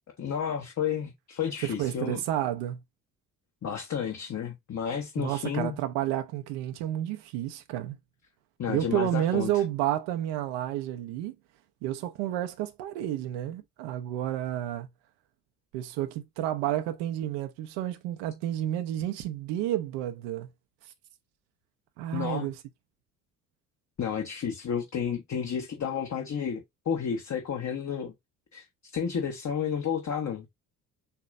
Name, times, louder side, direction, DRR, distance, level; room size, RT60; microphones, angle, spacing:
voice 1, 0.2-2.2 3.6-5.8 8.6-9.6 22.1-22.5 24.0-28.1 28.5-28.7 28.9-30.5, left 7 dB, 35° left, 1.3 m, -31 dB
voice 2, 1.6-2.8 5.2-8.0 8.7-11.3 11.8-14.9 15.7-20.5 22.0-22.5, right 12 dB, 60° right, 0.9 m, -30 dB
6.9 x 3.0 x 2.6 m
figure-of-eight pair, 50°, 47 cm